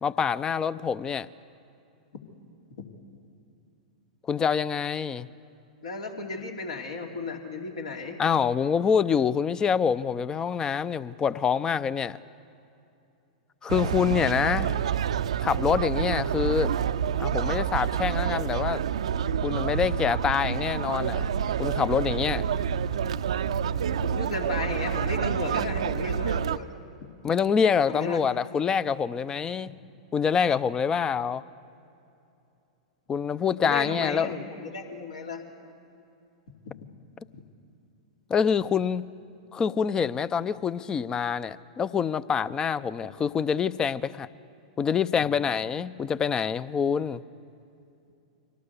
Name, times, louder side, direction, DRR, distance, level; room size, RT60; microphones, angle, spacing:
voice 1, 0.0-1.3 4.3-5.3 8.2-12.2 13.6-14.7 15.4-16.7 17.2-18.8 19.4-21.3 21.6-22.4 27.2-29.7 30.1-31.4 33.1-34.3 38.3-39.1 39.5-44.3 44.8-47.2, left 6 dB, 20° left, 0.6 m, -26 dB
voice 2, 5.8-8.2 14.6-14.8 24.0-26.8 27.9-28.2 29.7-29.8 33.6-35.4 45.2-45.3, left 3 dB, 70° left, 2.9 m, -34 dB
sound 1, 13.7-26.6, right 8 dB, 70° right, 0.6 m, -28 dB
24.5 x 18.0 x 8.3 m
figure-of-eight pair, 100°, 3 cm